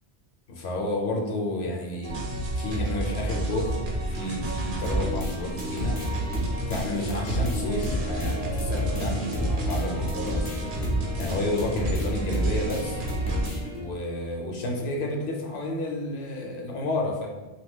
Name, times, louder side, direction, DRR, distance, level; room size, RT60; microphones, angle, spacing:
voice 1, 0.5-2.2 2.6-3.8 4.1-6.0 6.7-10.5 11.2-13.0 13.8-17.3, left 1 dB, 80° left, 1 dB, 0.9 m, -31 dB
sound 1, 2.0-13.5, right 1 dB, 60° right, 0.7 m, -31 dB
sound 2, 4.8-13.8, left 1 dB, 25° left, 0.5 m, -32 dB
2.8 x 2.2 x 3.5 m, 1.1 s
omnidirectional pair, 1.1 m